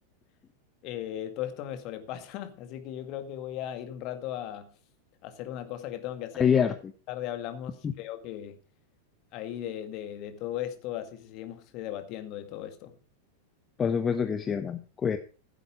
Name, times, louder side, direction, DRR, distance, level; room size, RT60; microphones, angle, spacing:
voice 1, 0.8-4.7 5.2-6.5 7.1-8.6 9.3-13.0, left 11 dB, 40° left, 2.0 m, -37 dB
voice 2, 6.4-6.7 7.8-7.9 13.8-15.2, left 7 dB, 20° left, 0.9 m, -25 dB
15.5 x 8.2 x 5.0 m
figure-of-eight pair, 90°, 0 cm